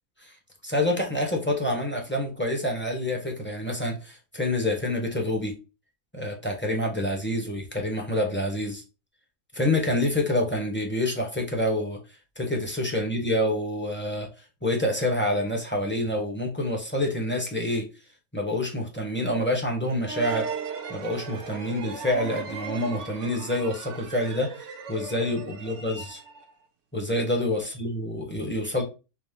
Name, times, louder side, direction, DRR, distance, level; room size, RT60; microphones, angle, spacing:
voice 1, 0.6-5.5 6.1-8.8 9.5-12.0 12.4-14.3 14.6-17.8 18.3-20.5 20.9-26.2 26.9-28.8, left 1 dB, 10° left, 1 dB, 0.7 m, -27 dB
sound 1, 20.0-26.5, right 5 dB, 65° right, 0.9 m, -37 dB
5.9 x 2.0 x 3.5 m, 0.31 s
omnidirectional pair, 1.4 m